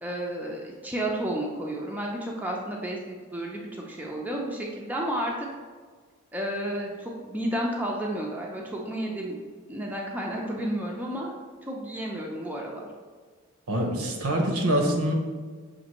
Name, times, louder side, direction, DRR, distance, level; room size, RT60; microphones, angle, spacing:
voice 1, 0.0-5.5 6.3-9.4 9.7-11.3 11.6-12.9, right 1 dB, 5° right, -2 dB, 0.4 m, -32 dB
voice 2, 13.7-15.1, right 1 dB, 90° right, 2 dB, 0.7 m, -25 dB
6.0 x 2.5 x 2.9 m, 1.6 s
head